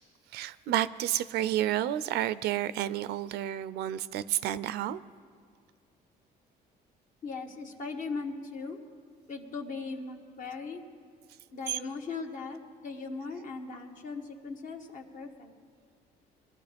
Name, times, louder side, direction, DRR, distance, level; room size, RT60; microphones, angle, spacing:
voice 1, 0.3-5.0 11.7-11.8, right 12 dB, 75° right, 0.5 m, -30 dB
voice 2, 7.2-8.8 9.3-10.8 11.5-15.5, left 4 dB, 50° left, 1.4 m, -39 dB
22.5 x 12.5 x 3.5 m
cardioid pair, 110°, 17 cm